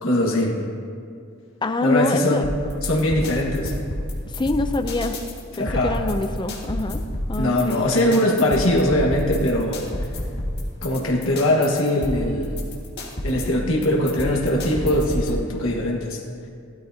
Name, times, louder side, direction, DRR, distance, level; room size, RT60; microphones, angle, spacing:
voice 1, 0.0-0.6 1.8-2.5 2.8-3.7 5.6-6.0 7.4-10.1 10.8-12.5 13.2-16.2, left 1 dB, 80° left, -1 dB, 1.5 m, -21 dB
voice 2, 1.6-2.4 4.3-5.2 5.6-7.0 7.3-7.9, left 2 dB, 20° left, 8 dB, 0.4 m, -25 dB
sound 1, 2.4-15.4, left 1 dB, 55° left, 1.9 m, -29 dB
16.0 x 12.5 x 2.8 m, 2.3 s
head